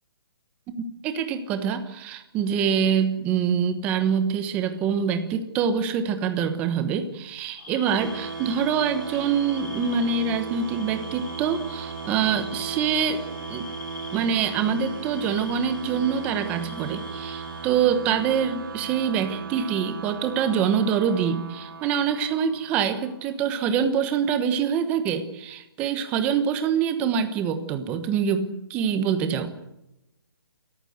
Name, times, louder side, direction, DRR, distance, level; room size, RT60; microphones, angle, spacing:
voice 1, 1.0-13.2 13.5-13.6 14.1-29.5, right 7 dB, 10° right, 9 dB, 1.1 m, -25 dB
sound 1, 7.6-17.7, left 4 dB, 40° left, 5.2 m, -44 dB
sound 2, 7.9-23.2, right 5 dB, 65° right, 2.8 m, -37 dB
27.0 x 14.5 x 8.0 m, 0.91 s
hypercardioid pair, 175°, 12 cm